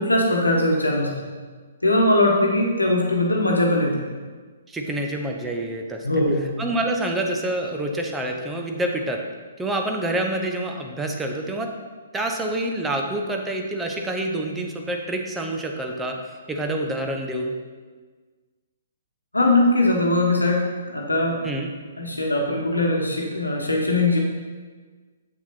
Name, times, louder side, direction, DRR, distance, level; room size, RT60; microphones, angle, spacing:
voice 1, 0.0-1.3 1.8-4.1 6.0-6.5 19.3-20.6 20.9-21.4 22.0-24.2, left 2 dB, 80° left, 0 dB, 1.1 m, -20 dB
voice 2, 4.7-6.1 6.6-9.2 9.6-11.7 12.1-16.2 16.5-17.5 21.4-21.7, right 1 dB, 10° right, 1 dB, 0.8 m, -27 dB
7.7 x 6.0 x 4.2 m, 1.4 s
figure-of-eight pair, 125°, 0 cm